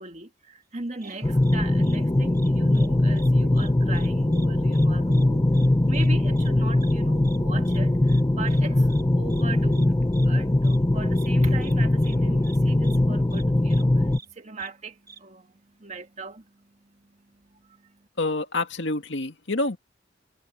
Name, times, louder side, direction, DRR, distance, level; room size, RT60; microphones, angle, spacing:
voice 1, 0.0-18.1, right 3 dB, 40° right, 1.9 m, -39 dB
sound 1, 1.0-1.1 1.4-1.6 1.8-2.0 2.3-2.9 3.1-3.3 3.5-4.1 4.3-4.5 4.7-4.9 5.1-5.2 5.5-5.7 5.9-6.1 6.4-6.5 6.8-6.9 7.2-7.4 7.7-7.8 8.1-8.2 8.5-8.6 8.9-9.0 9.3-9.4 9.7-9.9 10.1-10.3 10.6-10.8 11.2-11.3 11.6-11.7 12.0-12.2 12.4-12.6 12.8-13.0 13.3-13.4 13.7-13.8 14.1-14.3 14.6-14.7 15.1-15.2, right 5 dB, 20° right, 3.5 m, -48 dB
sound 2, 1.2-14.2, left 1 dB, 20° left, 0.5 m, -21 dB
voice 2, 18.2-19.8, left 2 dB, 75° left, 2.1 m, -27 dB
head